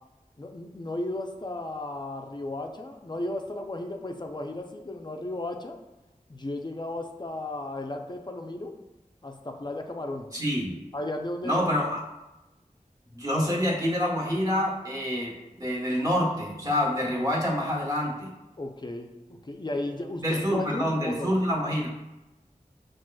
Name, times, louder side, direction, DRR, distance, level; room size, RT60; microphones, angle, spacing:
voice 1, 0.4-5.8 6.3-8.8 9.2-10.3 10.9-11.6 18.6-21.3, left 1 dB, 30° left, 4 dB, 0.4 m, -34 dB
voice 2, 10.3-10.8 11.4-12.0 13.1-18.3 20.2-21.9, equal, 25° right, -3 dB, 1.0 m, -27 dB
5.9 x 2.4 x 2.3 m, 1.0 s
wide cardioid pair, 50°, 14 cm